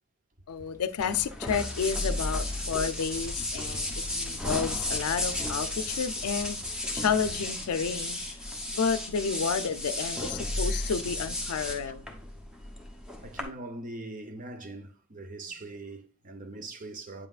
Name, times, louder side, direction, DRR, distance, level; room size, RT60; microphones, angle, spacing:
voice 1, 0.5-6.6 6.9-8.2 8.7-12.0, left 6 dB, 90° left, 0.4 m, -31 dB
sound 1, 1.0-13.4, left 1 dB, 5° right, 0.8 m, -33 dB
voice 2, 11.6-12.0 13.2-17.3, right 2 dB, 35° right, 0.7 m, -42 dB
8.1 x 5.5 x 2.4 m
head